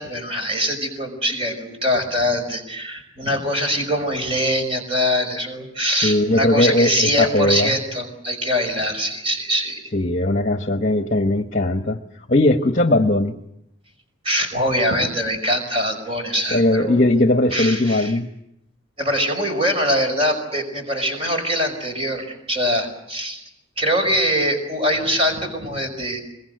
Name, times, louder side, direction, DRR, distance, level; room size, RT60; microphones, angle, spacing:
voice 1, 0.0-9.8 14.2-17.0 17.5-18.2 19.0-23.4 23.8-26.2, equal, 30° right, 4 dB, 5.4 m, -23 dB
voice 2, 6.0-7.7 9.9-12.0 12.3-13.3 16.5-18.3, left 1 dB, 40° left, 7 dB, 1.2 m, -19 dB
25.5 x 23.0 x 7.9 m, 0.80 s
head